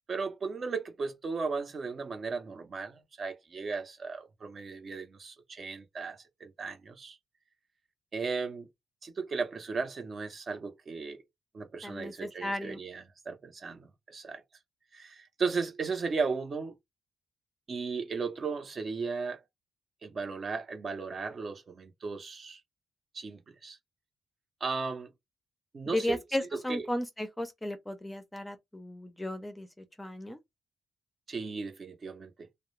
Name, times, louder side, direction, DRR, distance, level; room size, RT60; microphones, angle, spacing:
voice 1, 0.1-7.2 8.1-8.7 9.0-11.2 11.5-14.4 14.9-16.7 17.7-19.4 20.0-22.6 23.1-23.8 24.6-25.1 25.7-26.2 26.5-26.9 31.3-32.5, right 4 dB, 45° right, 0.6 m, -36 dB
voice 2, 11.8-12.8 25.9-30.4, left 1 dB, 10° left, 0.5 m, -35 dB
2.3 x 2.0 x 3.0 m
cardioid pair, 100°, 0 cm